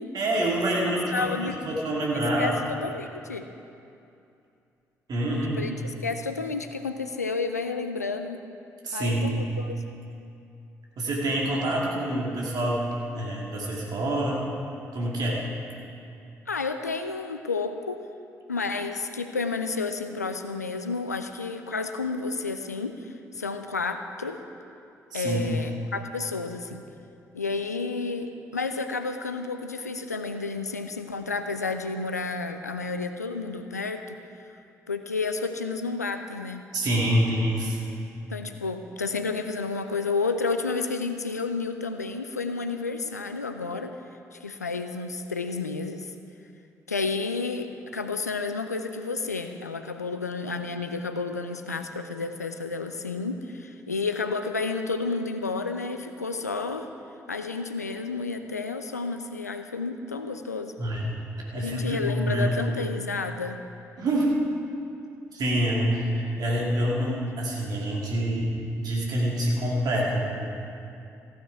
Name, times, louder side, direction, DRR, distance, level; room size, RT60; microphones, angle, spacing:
voice 1, 0.1-2.7 5.1-5.7 8.8-9.4 11.0-14.5 14.9-15.4 25.1-25.6 36.7-37.8 60.8-61.2 61.5-62.6 64.0-64.3 65.3-70.3, right 1 dB, 50° right, -3 dB, 2.4 m, -26 dB
voice 2, 0.8-1.6 2.1-3.5 5.6-5.7 6.0-8.4 8.9-9.8 16.5-18.0 18.5-24.4 25.1-26.8 27.3-34.2 34.9-36.7 38.3-43.9 44.3-46.1 46.9-56.9 57.3-60.7 61.6-63.6, left 4 dB, 90° left, 8 dB, 0.4 m, -31 dB
15.0 x 9.0 x 4.6 m, 2.6 s
figure-of-eight pair, 40°, 8 cm